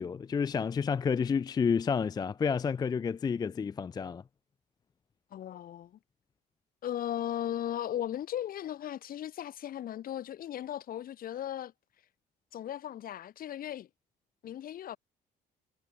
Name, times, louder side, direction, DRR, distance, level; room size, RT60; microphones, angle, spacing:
voice 1, 0.0-4.2, left 6 dB, 25° left, 0.4 m, -30 dB
voice 2, 5.3-6.0 6.8-11.7 12.5-13.9 14.4-15.0, left 11 dB, 60° left, 2.8 m, -37 dB
cardioid pair, 110°, 17 cm